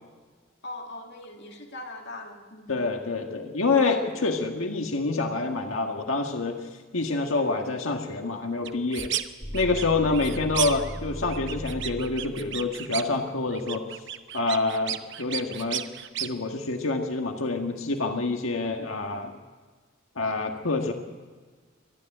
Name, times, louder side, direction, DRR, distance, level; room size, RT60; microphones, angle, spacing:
voice 1, 0.6-2.8, left 2 dB, 60° left, 2 dB, 2.2 m, -41 dB
voice 2, 2.7-6.6 6.9-9.1 9.5-13.9 14.3-15.8 16.2-19.3 20.1-20.9, left 3 dB, 90° left, 4 dB, 1.6 m, -27 dB
sound 1, 8.7-9.3 9.5-11.0 11.3-13.2 13.5-16.3, right 11 dB, 60° right, 0.9 m, -33 dB
sound 2, 9.4-12.2, equal, 25° left, 2.4 m, -37 dB
25.0 x 10.5 x 9.9 m, 1.5 s
head